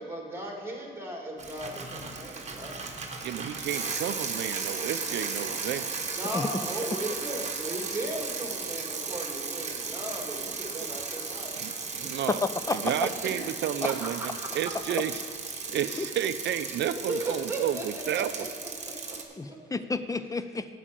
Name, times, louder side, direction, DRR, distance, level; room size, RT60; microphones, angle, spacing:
voice 1, 0.0-2.8 6.2-11.5 12.8-12.9 13.2-13.4 13.8-13.9 14.2-14.3 17.1-18.7 19.0-19.2 19.5-19.6, right 1 dB, 10° right, 0 dB, 2.1 m, -36 dB
Bicycle, 1.4-19.2, right 4 dB, 35° right, 1.2 m, -36 dB
voice 2, 3.2-5.9 11.6-12.4 12.7-15.2 15.7-18.5, right 10 dB, 65° right, 12 dB, 0.5 m, -31 dB
voice 3, 12.3-12.9 16.0-16.1 19.4-20.7, left 3 dB, 15° left, 11 dB, 0.5 m, -30 dB
8.1 x 5.1 x 7.6 m, 2.3 s
cardioid pair, 90°, 20 cm